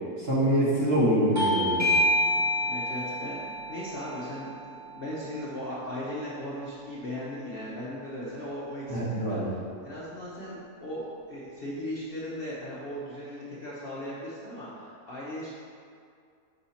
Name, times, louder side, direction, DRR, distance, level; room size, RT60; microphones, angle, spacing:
voice 1, 0.2-1.9 8.9-9.5, equal, 40° right, -7 dB, 1.3 m, -25 dB
Bell / Doorbell, 1.4-6.5, equal, 20° right, 0.5 m, -29 dB
voice 2, 2.3-9.4 9.8-15.5, left 1 dB, 45° left, -8 dB, 0.8 m, -38 dB
5.6 x 4.4 x 4.2 m, 2.3 s
omnidirectional pair, 1.7 m